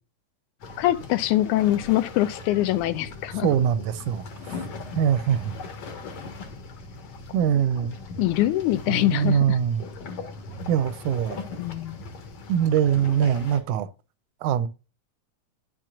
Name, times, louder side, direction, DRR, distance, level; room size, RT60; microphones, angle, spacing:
sound 1, 0.6-13.6, left 3 dB, 55° left, 2.3 m, -39 dB
voice 1, 0.8-3.5 8.2-9.6 11.6-12.0, left 15 dB, 85° left, 2.0 m, -23 dB
voice 2, 3.4-4.6 5.0-5.6 7.3-8.0 8.9-9.9 10.7-11.4 12.5-13.9 14.4-14.7, right 9 dB, 85° right, 2.1 m, -23 dB
10.5 x 5.9 x 2.4 m
omnidirectional pair, 3.5 m